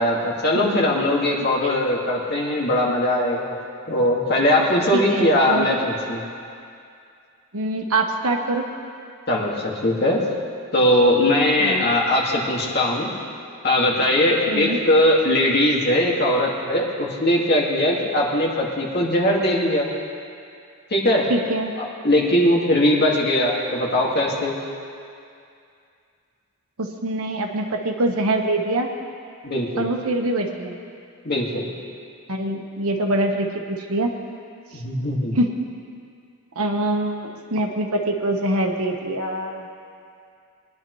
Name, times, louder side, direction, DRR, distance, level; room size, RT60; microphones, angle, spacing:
voice 1, 0.0-3.6 3.9-6.2 9.3-10.2 10.7-13.1 13.6-19.9 20.9-21.3 22.0-24.6 29.4-29.9 31.2-31.7 34.7-35.4, left 1 dB, 45° left, -3 dB, 2.0 m, -20 dB
voice 2, 1.4-1.7 4.9-5.7 7.5-8.6 11.6-11.9 14.5-14.8 21.3-21.7 26.8-28.9 29.8-30.8 32.3-34.1 35.3-35.5 36.5-39.7, right 1 dB, 75° right, 2 dB, 1.3 m, -24 dB
22.0 x 10.5 x 3.2 m, 2.4 s
head